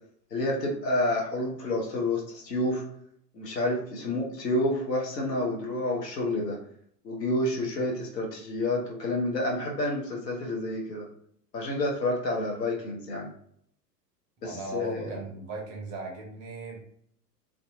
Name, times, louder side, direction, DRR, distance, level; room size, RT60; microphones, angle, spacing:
voice 1, 0.3-2.8 3.3-6.6 7.0-11.1 11.5-13.3 14.4-15.1, left 1 dB, 80° left, -2 dB, 0.9 m, -29 dB
voice 2, 14.4-16.8, right 2 dB, 15° right, 0 dB, 0.4 m, -37 dB
2.6 x 2.3 x 2.4 m, 0.66 s
figure-of-eight pair, 95°, 49 cm